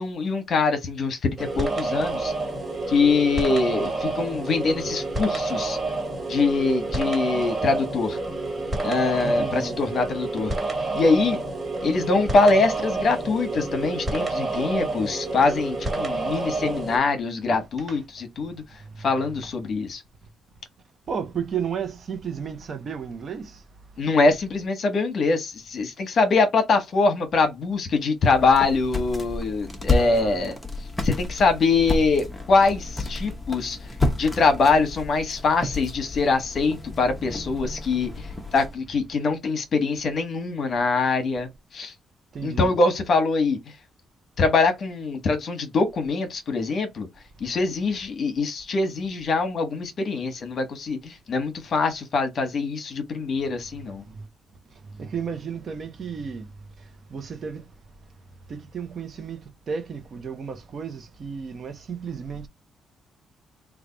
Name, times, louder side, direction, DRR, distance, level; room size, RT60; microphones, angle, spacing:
voice 1, 0.0-2.3 2.9-5.8 6.3-8.2 8.8-10.5 10.9-11.4 11.8-18.6 19.0-20.0 24.0-30.6 31.0-33.8 34.2-38.3 38.5-41.9 42.4-43.6 44.4-47.1 47.4-54.0, left 4 dB, 50° left, 1.0 m, -23 dB
sound 1, 1.4-17.0, right 3 dB, 25° right, 1.7 m, -29 dB
voice 2, 9.2-9.8 17.5-18.0 21.1-23.6 29.9-30.4 33.2-33.3 42.3-42.7 54.1-54.2 54.9-56.5 57.1-57.7 58.5-62.5, right 6 dB, 45° right, 0.8 m, -33 dB
sound 2, 28.2-38.7, left 2 dB, 10° left, 0.8 m, -31 dB
3.3 x 2.4 x 3.8 m
cardioid pair, 125°, 0 cm